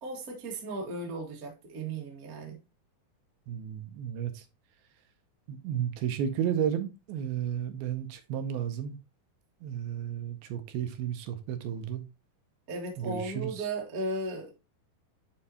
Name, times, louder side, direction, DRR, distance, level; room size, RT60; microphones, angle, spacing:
voice 1, 0.0-2.6 12.7-14.5, right 2 dB, 55° right, 1.0 m, -36 dB
voice 2, 3.5-4.4 5.5-9.0 9.6-12.0 13.0-13.5, right 9 dB, 80° right, 2.5 m, -33 dB
8.8 x 4.2 x 2.8 m
omnidirectional pair, 4.5 m